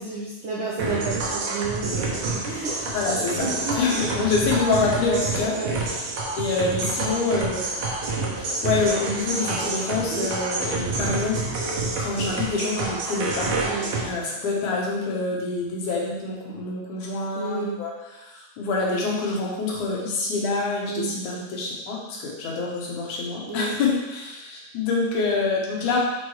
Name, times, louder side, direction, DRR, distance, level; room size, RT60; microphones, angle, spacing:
voice 1, 0.0-2.8 3.4-4.0 5.5-5.7 13.6-13.9 17.3-17.8 20.9-21.1 23.5-23.7, right 4 dB, 85° right, -5 dB, 1.1 m, -31 dB
sound 1, 0.8-14.0, right 3 dB, 65° right, 1.3 m, -28 dB
voice 2, 2.9-3.5 3.8-6.0 6.4-7.9 8.4-11.4 12.0-13.5 14.0-26.0, left 3 dB, 80° left, -3 dB, 2.6 m, -26 dB
6.5 x 4.6 x 3.2 m, 1.0 s
omnidirectional pair, 3.4 m